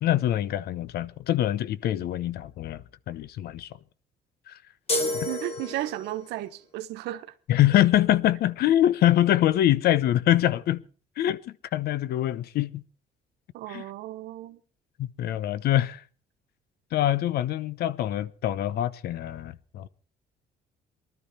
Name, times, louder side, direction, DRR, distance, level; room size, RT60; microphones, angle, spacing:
voice 1, 0.0-3.7 4.5-4.6 5.1-5.3 7.5-10.8 11.2-12.8 13.7-13.8 15.0-16.0 16.9-19.9, left 12 dB, 70° left, 0.8 m, -24 dB
sound 1, 4.9-6.2, left 2 dB, 35° left, 3.8 m, -29 dB
voice 2, 5.3-7.3 13.5-14.6, right 15 dB, 85° right, 1.2 m, -34 dB
19.5 x 12.5 x 4.2 m
cardioid pair, 110°, 17 cm